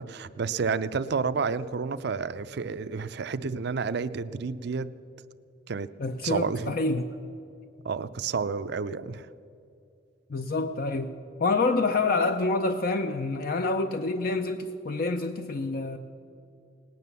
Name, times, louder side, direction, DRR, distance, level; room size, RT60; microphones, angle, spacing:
voice 1, 0.0-4.9 5.7-5.9 6.2-6.8 7.8-9.3, right 5 dB, 60° right, 14 dB, 0.5 m, -30 dB
voice 2, 6.0-7.0 10.3-11.1 11.4-16.0, left 3 dB, 50° left, 7 dB, 0.5 m, -27 dB
19.0 x 9.3 x 6.8 m, 2.6 s
head